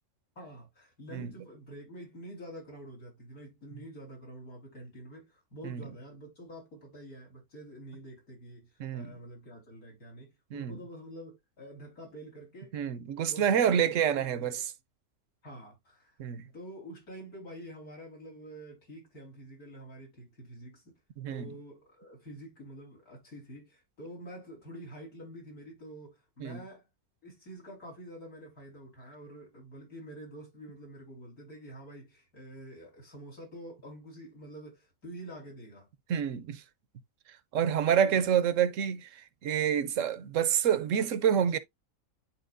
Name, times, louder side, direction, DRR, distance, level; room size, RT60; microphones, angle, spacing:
voice 1, 0.4-12.8 13.3-14.6 15.4-16.2 16.5-21.0 21.3-26.9 27.2-35.9 37.9-38.5, right 1 dB, 80° left, 4.6 m, -47 dB
voice 2, 8.8-9.1 10.5-10.7 12.7-14.6 16.2-16.4 21.2-21.5 26.4-26.6 36.1-36.6 37.5-41.6, right 8 dB, 65° right, 1.0 m, -28 dB
10.5 x 4.4 x 2.5 m
omnidirectional pair, 1.5 m